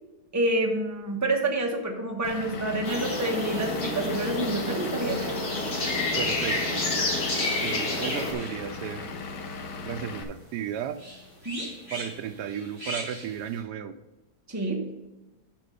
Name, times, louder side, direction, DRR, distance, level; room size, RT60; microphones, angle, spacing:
voice 1, 0.3-5.5 11.4-11.7 14.5-14.8, right 2 dB, 10° right, 1 dB, 1.0 m, -28 dB
Vehicle / Engine, 2.2-10.2, left 5 dB, 90° left, 1.5 m, -37 dB
sound 1, 2.8-8.3, left 2 dB, 65° left, 2.3 m, -29 dB
voice 2, 6.2-6.8 7.6-9.1 9.8-11.0 11.9-13.9, right 9 dB, 80° right, 10 dB, 1.1 m, -34 dB
sound 2, 6.7-13.6, right 1 dB, 30° right, 3.7 m, -43 dB
7.6 x 6.1 x 5.3 m, 1.0 s
omnidirectional pair, 1.8 m